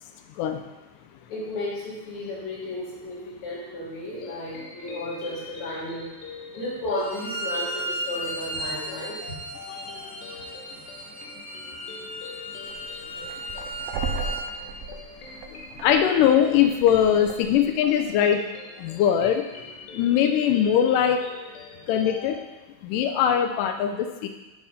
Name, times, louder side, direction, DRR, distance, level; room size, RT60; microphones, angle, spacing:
voice 1, 1.3-6.1 6.5-9.2, left 1 dB, 55° left, -6 dB, 3.1 m, -33 dB
sound 1, 4.1-22.5, left 4 dB, 70° left, 1.8 m, -43 dB
Bowed string instrument, 7.0-14.4, right 1 dB, 65° right, 2.4 m, -35 dB
sound 2, 12.7-18.0, right 4 dB, 80° right, 2.5 m, -36 dB
voice 2, 15.8-19.4 19.9-21.2 21.9-22.4 22.8-24.3, left 9 dB, 90° left, 6 dB, 1.8 m, -21 dB
10.5 x 3.7 x 5.6 m, 1.2 s
omnidirectional pair, 4.4 m